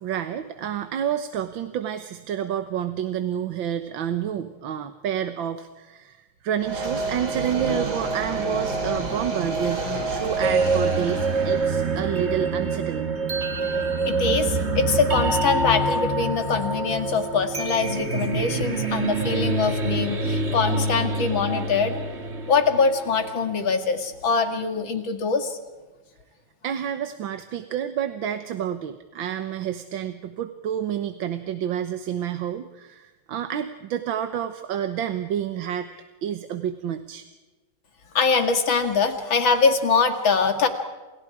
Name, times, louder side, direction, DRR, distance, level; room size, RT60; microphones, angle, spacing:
voice 1, 0.0-13.1 26.6-37.3, right 9 dB, 85° right, 9 dB, 1.8 m, -29 dB
sound 1, 6.6-11.8, right 3 dB, 55° right, 4.0 m, -28 dB
sound 2, 10.4-23.4, right 3 dB, 35° right, 2.0 m, -26 dB
voice 2, 13.6-22.0 22.5-25.6 38.1-40.7, left 5 dB, 90° left, 7 dB, 3.0 m, -23 dB
29.5 x 28.0 x 4.9 m, 1.2 s
omnidirectional pair, 2.1 m